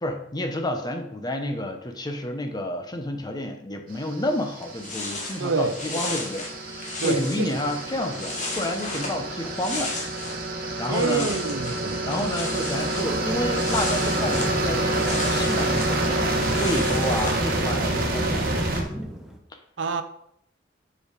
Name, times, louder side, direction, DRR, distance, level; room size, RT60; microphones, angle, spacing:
voice 1, 0.0-9.9 10.8-11.3 12.1-18.5, left 1 dB, 20° left, 5 dB, 0.9 m, -30 dB
sound 1, 4.1-18.8, right 1 dB, 55° right, 1.4 m, -27 dB
sound 2, 4.3-4.4 4.6-10.5 10.7-17.4, left 2 dB, 40° left, 1.8 m, -35 dB
voice 2, 5.4-6.0 7.0-7.5 10.9-12.1 19.8-20.0, right 4 dB, 75° right, 10 dB, 0.6 m, -27 dB
Thunder, 13.0-19.4, equal, 5° right, 1.0 m, -37 dB
7.0 x 5.2 x 5.0 m, 0.73 s
head